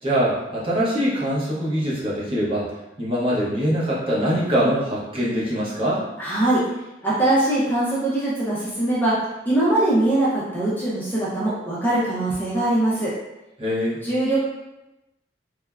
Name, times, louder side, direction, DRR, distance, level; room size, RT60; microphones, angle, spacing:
voice 1, 0.0-2.7 3.0-6.0 13.6-14.0, equal, 30° right, -7 dB, 0.7 m, -23 dB
voice 2, 6.2-6.6 7.0-9.1 9.5-13.1 14.0-14.4, right 1 dB, 10° left, -8 dB, 0.5 m, -21 dB
3.3 x 2.0 x 2.3 m, 0.97 s
head